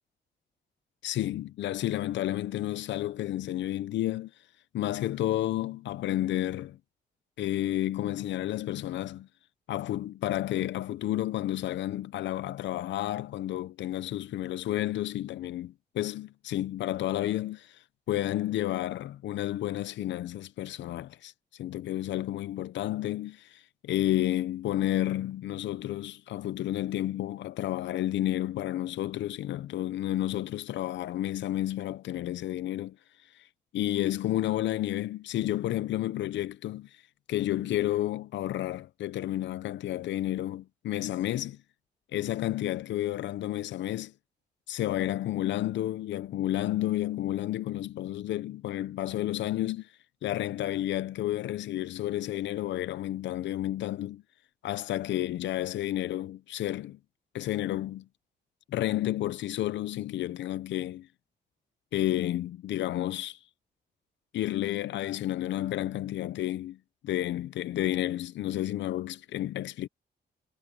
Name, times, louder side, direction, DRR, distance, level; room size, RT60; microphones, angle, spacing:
voice 1, 1.0-4.3 4.7-6.8 7.4-9.3 9.7-33.0 33.7-37.0 37.3-41.6 42.1-44.1 44.7-49.9 50.2-54.2 54.6-57.0 57.3-58.0 58.7-61.1 61.9-63.4 64.3-66.8 67.0-69.9, left 13 dB, 80° left, 0.6 m, -31 dB
cardioid pair, 90°, 18 cm